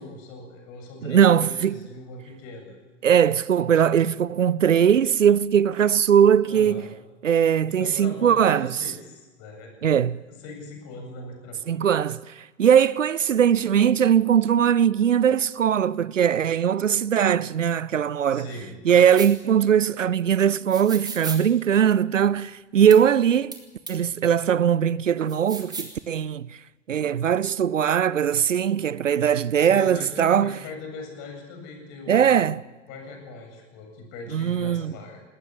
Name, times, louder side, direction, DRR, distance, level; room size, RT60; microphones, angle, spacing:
voice 1, 0.0-2.8 6.5-6.9 7.7-11.8 18.3-18.7 29.6-32.6 32.9-35.2, left 3 dB, 45° left, 7.9 m, -40 dB
voice 2, 1.0-1.8 3.0-6.9 7.2-8.8 9.8-10.2 11.7-12.2 12.6-18.5 18.9-23.6 23.9-26.5 26.9-30.6 32.1-32.6 34.3-34.9, right 8 dB, 80° right, 0.6 m, -20 dB
sound 1, 19.2-19.3 20.7-21.4 22.9-23.0 23.5-23.6 23.9-24.0 25.3-25.9, right 3 dB, 10° right, 3.0 m, -34 dB
19.5 x 19.0 x 8.7 m
figure-of-eight pair, 85°, 38 cm